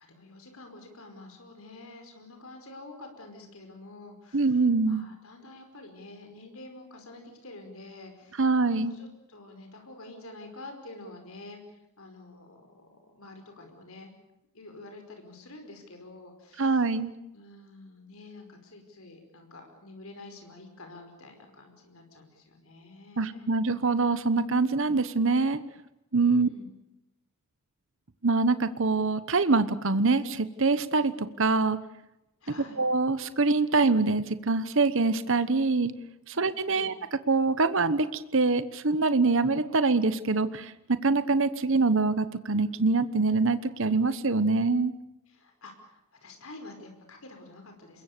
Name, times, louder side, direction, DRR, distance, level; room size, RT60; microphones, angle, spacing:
voice 1, 0.1-14.1 14.5-16.9 17.3-23.5 26.2-26.6 32.4-32.8 36.3-36.4 36.7-36.9 45.3-48.0, left 2 dB, 75° left, 4 dB, 5.1 m, -48 dB
voice 2, 4.3-5.0 8.4-8.9 16.6-17.1 23.2-25.6 26.1-26.5 28.2-31.8 32.8-35.9 36.3-36.9 37.3-44.9, right 3 dB, 60° right, 14 dB, 1.1 m, -24 dB
27.5 x 22.0 x 6.8 m, 0.87 s
head